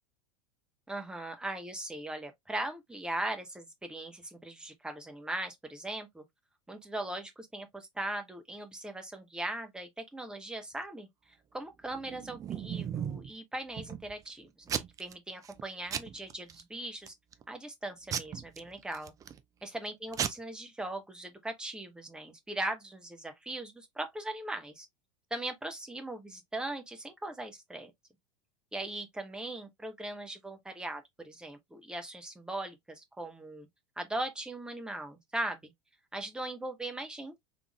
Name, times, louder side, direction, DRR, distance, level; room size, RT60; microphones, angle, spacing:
voice 1, 0.9-6.2 6.7-11.1 11.5-17.1 17.5-19.1 19.6-24.9 25.3-27.9 28.7-33.7 34.0-35.7 36.1-37.4, right 1 dB, 5° right, 0.8 m, -39 dB
Packing tape duct tape / Tearing, 11.9-13.3 13.8-14.3 14.7-15.1 15.4-15.6 15.9-16.6 17.1-17.4 18.1-19.4 19.9-20.0 20.1-20.3, right 8 dB, 20° right, 0.3 m, -36 dB
3.4 x 3.3 x 2.2 m
figure-of-eight pair, 80°, 17 cm